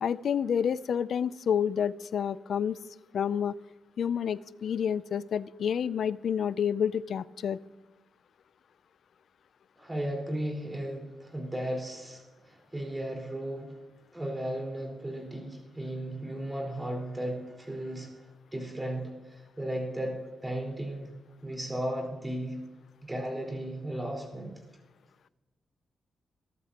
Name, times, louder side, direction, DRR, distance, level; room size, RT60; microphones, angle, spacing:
voice 1, 0.0-2.8 3.1-3.6 4.0-7.6, left 8 dB, 70° left, 17 dB, 0.4 m, -29 dB
voice 2, 9.8-13.8 14.1-18.3 18.5-21.1 21.4-22.6 23.0-24.5, right 1 dB, 15° right, 0 dB, 4.6 m, -35 dB
22.5 x 11.5 x 3.0 m, 1.1 s
wide cardioid pair, 125°, 0 cm